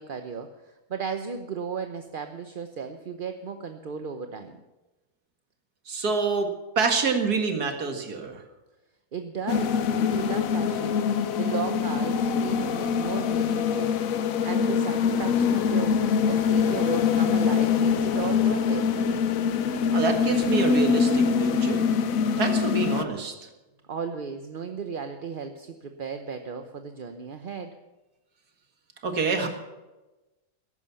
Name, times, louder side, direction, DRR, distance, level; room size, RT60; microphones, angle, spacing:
voice 1, 0.0-4.6 9.1-11.0 11.4-14.0 14.4-18.9 23.9-27.8, right 6 dB, 45° right, 7 dB, 0.8 m, -35 dB
voice 2, 5.9-8.4 19.9-21.9 22.4-23.3 29.0-29.5, right 4 dB, 75° right, 5 dB, 2.4 m, -27 dB
sound 1, 9.5-23.0, left 6 dB, 65° left, 1.2 m, -24 dB
14.0 x 11.0 x 7.1 m, 1.1 s
omnidirectional pair, 1.7 m